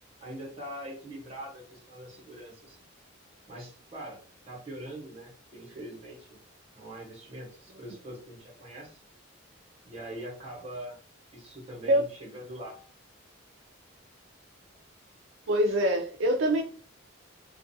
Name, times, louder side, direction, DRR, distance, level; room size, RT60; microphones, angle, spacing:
voice 1, 0.2-2.8 3.5-6.4 6.7-9.0 9.8-11.0 11.3-12.8, right 1 dB, 30° right, -3 dB, 1.0 m, -43 dB
voice 2, 15.5-16.6, equal, 70° right, 2 dB, 0.4 m, -24 dB
2.3 x 2.2 x 2.6 m, 0.43 s
head